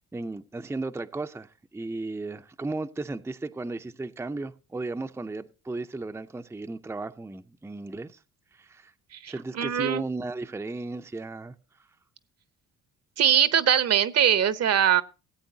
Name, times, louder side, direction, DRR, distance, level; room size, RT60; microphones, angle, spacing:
voice 1, 0.1-8.2 8.5-8.9 9.3-11.5, right 2 dB, 10° right, 0.5 m, -35 dB
voice 2, 9.1-10.0 13.2-15.0, right 9 dB, 55° right, 0.8 m, -22 dB
17.0 x 8.6 x 2.7 m
cardioid pair, 90°, 30 cm